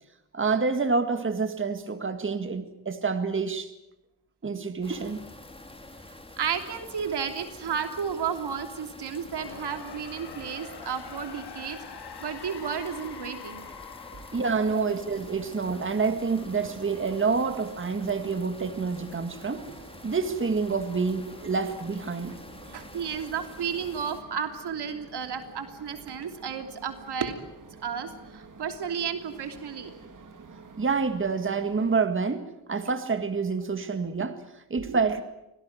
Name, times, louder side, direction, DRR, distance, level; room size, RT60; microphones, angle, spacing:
voice 1, 0.3-3.7 4.4-5.2 14.3-19.7 20.0-22.4 30.8-35.2, right 4 dB, 30° right, 9 dB, 1.9 m, -28 dB
sound 1, 4.8-24.2, left 2 dB, 15° left, 3.4 m, -47 dB
voice 2, 6.4-11.8 12.2-13.6 14.7-14.9 22.7-27.4 27.8-29.9 34.8-35.0, right 7 dB, 80° right, 7 dB, 3.2 m, -32 dB
sound 2, 9.1-16.0, left 7 dB, 75° left, 3.0 m, -45 dB
sound 3, 15.1-32.0, right 4 dB, 50° right, 2.8 m, -50 dB
25.0 x 18.0 x 9.3 m, 0.92 s
cardioid pair, 100°, 40 cm